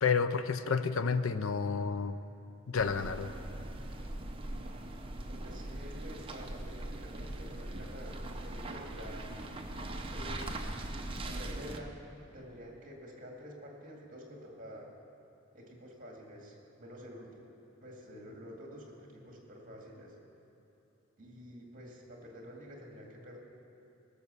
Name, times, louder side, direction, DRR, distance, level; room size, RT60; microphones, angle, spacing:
voice 1, 0.0-2.2 2.7-3.3, left 5 dB, 80° left, 11 dB, 0.6 m, -30 dB
sound 1, 2.8-11.8, right 1 dB, 25° right, 0.7 m, -41 dB
voice 2, 5.4-9.3 10.1-10.5 11.3-12.0 12.3-14.9 15.5-17.5 17.8-20.1 21.2-23.4, equal, 40° right, 0 dB, 2.2 m, -49 dB
18.0 x 6.9 x 6.9 m, 2.9 s
head